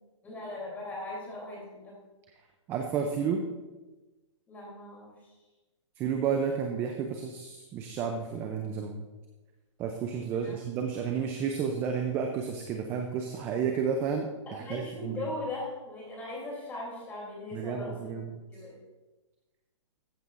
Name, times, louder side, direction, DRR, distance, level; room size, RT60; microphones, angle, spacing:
voice 1, 0.2-1.9 4.5-5.1 10.3-10.6 14.5-18.1 18.5-18.8, left 2 dB, 10° left, -3 dB, 3.0 m, -39 dB
voice 2, 2.7-3.4 6.0-9.1 9.8-15.3 17.5-18.4, right 6 dB, 15° right, 4 dB, 0.4 m, -31 dB
14.0 x 8.7 x 2.5 m, 1.2 s
hypercardioid pair, 160°, 16 cm